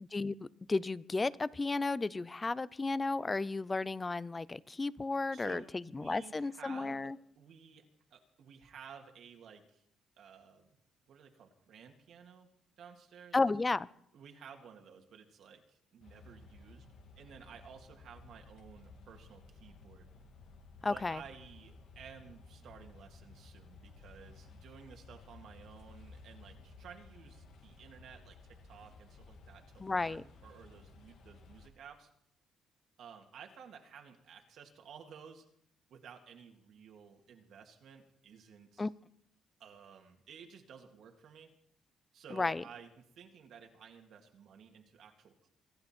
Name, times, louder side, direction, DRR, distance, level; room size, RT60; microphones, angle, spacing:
voice 1, 0.1-5.6 5.9-7.2 13.3-13.9 20.8-21.2 29.8-30.2 38.8-38.9 42.3-42.6, left 3 dB, 25° left, 20 dB, 0.6 m, -33 dB
voice 2, 5.3-7.8 8.1-9.8 10.2-10.7 11.1-12.5 12.8-13.4 14.1-16.9 17.2-20.1 20.8-32.1 33.0-35.5 35.9-38.9 39.6-41.5 42.1-45.5, right 7 dB, 70° right, 3 dB, 2.2 m, -54 dB
sound 1, 16.0-31.7, left 3 dB, 75° left, 2.3 m, -56 dB
24.5 x 10.5 x 4.4 m, 0.70 s
cardioid pair, 90°, 0 cm